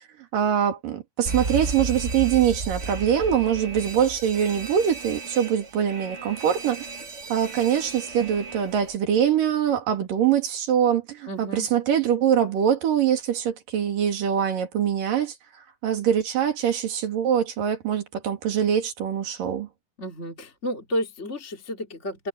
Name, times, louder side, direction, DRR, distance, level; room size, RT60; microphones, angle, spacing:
voice 1, 0.3-6.9 7.3-15.3 15.8-19.7, right 9 dB, 90° right, 4.3 m, -23 dB
Alarm, 1.3-9.0, right 3 dB, 45° right, 0.9 m, -34 dB
voice 2, 11.3-11.7 20.0-22.3, equal, 20° left, 3.6 m, -31 dB
omnidirectional pair, 3.8 m